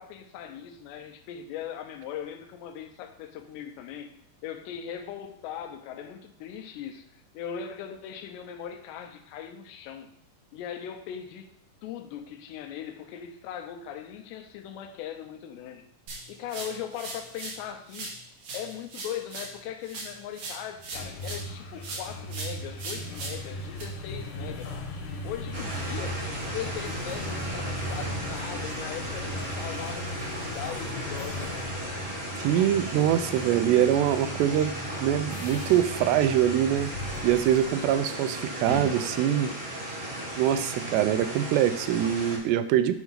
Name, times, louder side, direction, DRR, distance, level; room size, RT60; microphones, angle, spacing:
voice 1, 0.0-4.1 4.4-10.1 10.5-11.5 11.8-15.8 16.3-18.1 18.5-24.7 25.2-32.0, left 9 dB, 90° left, 7 dB, 3.0 m, -39 dB
sound 1, 16.1-17.6 17.9-21.5 21.8-23.8, right 2 dB, 55° right, 3.2 m, -39 dB
sound 2, 20.8-37.9, left 2 dB, 65° left, 2.1 m, -39 dB
sound 3, 25.5-42.4, right 1 dB, 20° right, 1.6 m, -35 dB
voice 2, 32.4-34.7 35.0-36.9 37.2-39.5 40.4-43.0, right 11 dB, 85° right, 11 dB, 2.6 m, -24 dB
9.3 x 3.5 x 5.6 m, 0.69 s
omnidirectional pair, 4.9 m